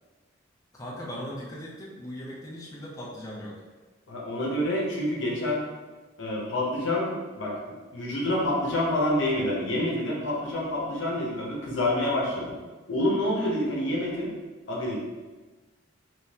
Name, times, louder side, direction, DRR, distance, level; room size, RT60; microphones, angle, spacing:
voice 1, 0.7-3.6, equal, 15° left, -5 dB, 0.5 m, -38 dB
voice 2, 4.1-5.6 6.2-12.6 12.9-14.3 14.7-15.0, left 1 dB, 65° left, -3 dB, 0.8 m, -27 dB
3.6 x 2.7 x 2.7 m, 1.3 s
head